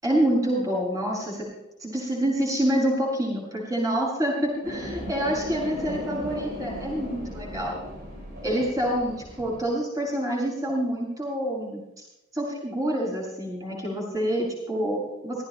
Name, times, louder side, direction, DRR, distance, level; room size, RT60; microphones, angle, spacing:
voice 1, 0.0-1.5 1.8-7.8 8.4-11.8 12.3-15.5, right 1 dB, 15° right, -3 dB, 7.5 m, -27 dB
sound 1, 4.6-9.6, equal, 50° right, 6.3 m, -36 dB
26.5 x 18.0 x 2.2 m, 0.91 s
head